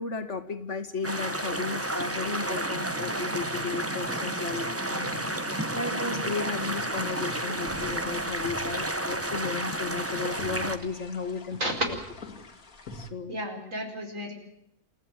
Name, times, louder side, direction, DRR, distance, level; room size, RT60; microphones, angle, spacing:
voice 1, 0.0-5.3 5.7-11.7 12.9-13.4, left 4 dB, 55° left, 8 dB, 2.1 m, -34 dB
sound 1, 1.0-10.8, right 1 dB, 10° right, 1.2 m, -31 dB
sound 2, 2.6-8.2, right 1 dB, 30° right, 7.8 m, -41 dB
sound 3, 6.6-13.1, left 2 dB, 85° left, 2.5 m, -46 dB
voice 2, 13.3-14.3, equal, 65° right, 3 dB, 5.2 m, -33 dB
28.0 x 15.5 x 9.0 m, 0.77 s
omnidirectional pair, 1.5 m